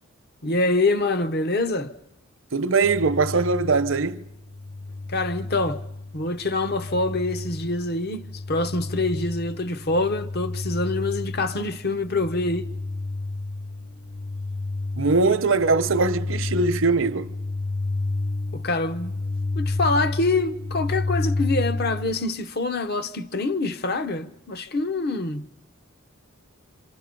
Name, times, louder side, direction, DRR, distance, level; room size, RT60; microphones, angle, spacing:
voice 1, 0.4-1.9 5.1-5.8 6.1-12.7 18.5-19.1 19.6-25.5, left 2 dB, 45° left, 0.9 m, -25 dB
voice 2, 2.5-4.2 15.0-17.3, right 4 dB, 60° right, 0.8 m, -21 dB
sound 1, 2.8-22.1, left 2 dB, 90° left, 4.9 m, -31 dB
27.5 x 26.0 x 5.3 m
head